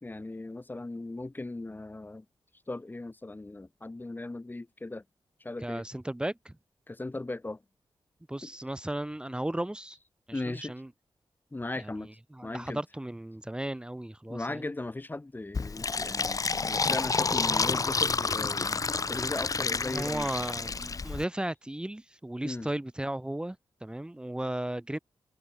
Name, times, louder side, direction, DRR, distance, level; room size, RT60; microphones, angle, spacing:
voice 1, 0.0-2.2 2.7-5.0 5.4-5.8 6.9-7.6 8.4-8.5 10.3-10.7 11.5-12.1 12.4-12.8 14.3-18.8 19.1-20.3 22.4-22.7, left 2 dB, 20° left, 2.3 m, -38 dB
voice 2, 5.6-6.5 8.3-10.0 10.3-10.9 11.8-14.7 19.9-25.0, right 1 dB, 10° right, 2.0 m, -35 dB
Fill (with liquid), 15.5-21.2, left 4 dB, 40° left, 1.3 m, -29 dB
open air
wide cardioid pair, 120°, 9 cm